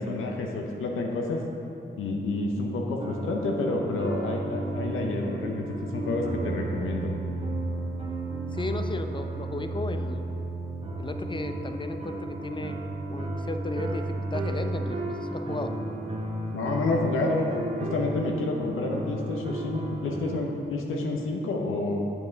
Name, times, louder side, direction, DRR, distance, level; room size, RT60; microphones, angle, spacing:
voice 1, 0.0-1.4 2.0-5.6 5.9-7.1 16.5-17.5 17.9-22.0, left 2 dB, 90° left, 1 dB, 0.7 m, -29 dB
sound 1, 3.0-20.4, right 2 dB, 30° right, 0.9 m, -33 dB
voice 2, 8.5-10.2 11.0-12.8 13.1-15.7, left 2 dB, 25° left, 7 dB, 0.5 m, -35 dB
7.5 x 5.9 x 3.9 m, 2.8 s
cardioid pair, 55°, 20 cm